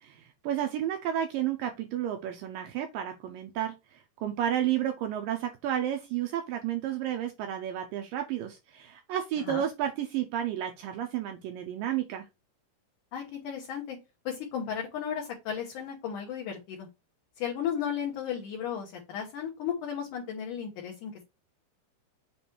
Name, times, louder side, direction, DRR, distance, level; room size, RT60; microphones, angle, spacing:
voice 1, 0.0-12.3, right 10 dB, 80° right, 5 dB, 2.0 m, -32 dB
voice 2, 13.1-14.0 14.3-16.9 17.4-21.1, left 8 dB, 65° left, -1 dB, 2.2 m, -34 dB
6.9 x 3.1 x 4.3 m, 0.25 s
omnidirectional pair, 4.6 m